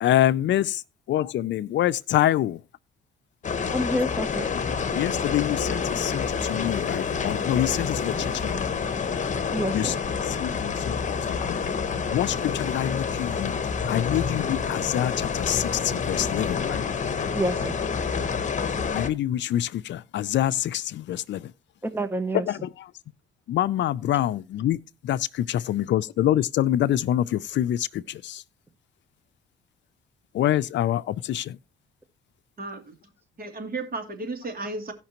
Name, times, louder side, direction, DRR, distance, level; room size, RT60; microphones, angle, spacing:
voice 1, 0.0-0.8 1.1-2.6 4.8-8.7 9.7-9.9 10.2-11.6 12.1-13.6 13.9-16.8 18.9-21.5 22.3-22.9 23.5-24.8 25.0-28.4 30.3-31.6, left 12 dB, 65° left, 0.5 m, -26 dB
sound 1, 3.4-19.1, left 6 dB, 40° left, 1.1 m, -28 dB
voice 2, 3.7-4.5 9.5-10.0 17.3-17.8 21.8-22.6, right 1 dB, 10° right, 0.7 m, -28 dB
voice 3, 32.6-33.1 33.4-34.9, right 2 dB, 45° right, 2.6 m, -34 dB
17.0 x 5.8 x 2.9 m
cardioid pair, 90°, 20 cm